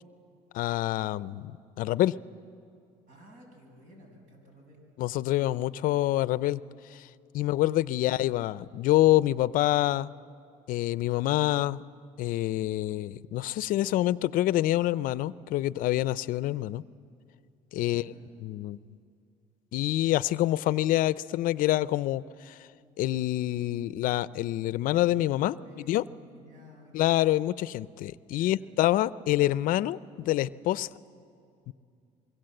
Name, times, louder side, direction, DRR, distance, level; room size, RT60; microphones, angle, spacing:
voice 1, 0.5-2.1 5.0-6.6 6.9-7.1 7.3-10.1 10.7-11.8 12.2-16.8 17.7-18.1 18.4-18.8 19.7-22.7 23.0-25.6 25.9-26.0 26.9-30.9 31.7-31.8, left 15 dB, 65° left, 18 dB, 0.6 m, -26 dB
voice 2, 3.1-4.8 17.8-18.2 25.4-27.1 28.3-28.6, left 1 dB, 60° right, 1 dB, 7.9 m, -53 dB
25.5 x 22.5 x 7.8 m, 2.4 s
supercardioid pair, 100°, 15 cm